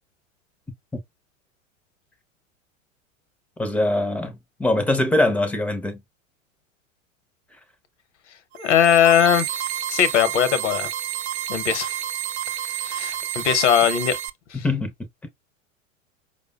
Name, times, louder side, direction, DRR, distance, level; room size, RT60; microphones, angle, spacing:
voice 1, 3.6-6.0 14.6-14.9, left 1 dB, 5° left, 0.4 m, -22 dB
sound 1, 8.5-14.3, right 11 dB, 55° right, 0.5 m, -29 dB
voice 2, 8.6-9.6 9.9-10.9 11.5-12.0 12.8-14.2 14.5-14.6, left 9 dB, 65° left, 0.8 m, -20 dB
4.9 x 2.2 x 2.2 m
figure-of-eight pair, 90°, 39 cm